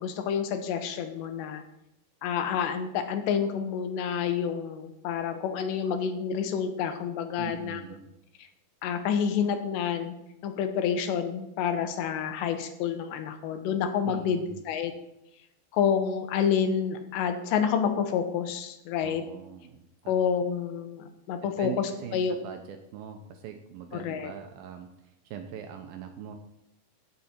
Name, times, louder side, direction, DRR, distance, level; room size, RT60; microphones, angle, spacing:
voice 1, 0.0-1.6 2.2-7.8 8.8-10.1 10.4-14.9 15.7-19.2 20.1-22.3 23.9-24.3, left 7 dB, 85° left, 8 dB, 3.2 m, -28 dB
voice 2, 7.4-8.1 14.1-14.6 19.0-20.2 21.4-26.3, right 8 dB, 80° right, 5 dB, 2.2 m, -42 dB
15.0 x 6.8 x 4.4 m, 0.86 s
omnidirectional pair, 5.0 m